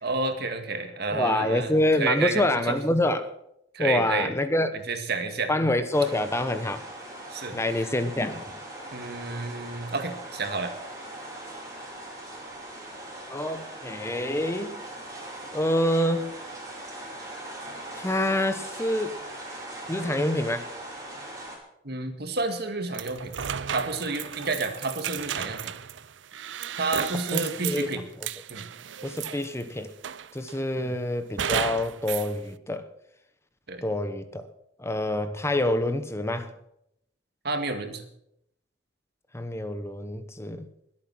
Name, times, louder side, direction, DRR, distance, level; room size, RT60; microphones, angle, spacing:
voice 1, 0.0-1.7 2.0-2.8 3.7-4.3 4.7-5.5 7.3-7.6 8.9-10.7 21.8-23.3 23.7-25.7 26.8-28.0 28.5-28.7 30.8-31.0 33.7-33.9 37.4-38.0, right 3 dB, 60° right, 2.1 m, -30 dB
voice 2, 1.1-3.3 3.8-4.7 5.5-6.8 7.5-8.6 13.3-14.8 15.5-16.3 17.9-19.1 19.9-20.7 27.3-27.9 28.2-28.3 29.0-29.9 30.3-32.9 33.8-34.5 34.8-36.5 39.3-40.7, left 1 dB, 15° left, 0.9 m, -26 dB
sound 1, 5.9-21.6, right 1 dB, 20° right, 5.1 m, -40 dB
sound 2, 22.9-29.6 30.0-30.6 31.4-32.3, right 8 dB, 85° right, 0.6 m, -34 dB
22.5 x 8.7 x 6.1 m
head